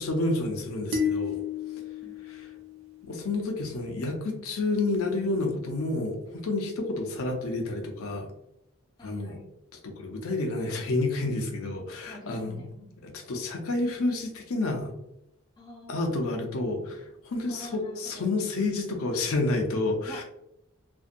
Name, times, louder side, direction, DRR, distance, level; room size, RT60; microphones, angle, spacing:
voice 1, 0.0-1.4 2.3-2.5 3.0-8.3 9.0-9.4 9.8-12.7 13.0-14.9 15.9-20.2, left 2 dB, 80° left, 3 dB, 0.5 m, -29 dB
sound 1, 0.9-3.3, left 6 dB, 75° right, 0.5 m, -32 dB
voice 2, 9.0-9.5 12.0-12.9 15.6-16.3 17.5-18.4 20.0-20.2, equal, 20° left, -2 dB, 0.4 m, -47 dB
2.6 x 2.2 x 2.4 m, 0.82 s
head